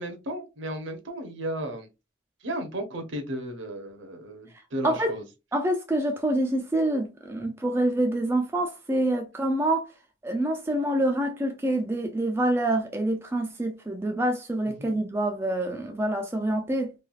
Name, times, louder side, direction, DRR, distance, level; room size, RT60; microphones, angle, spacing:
voice 1, 0.0-1.9 2.4-5.2 14.8-14.9, right 1 dB, 75° right, 0.8 m, -34 dB
voice 2, 5.5-9.9 10.2-16.9, right 1 dB, 10° right, 0.3 m, -26 dB
3.2 x 2.3 x 2.3 m
head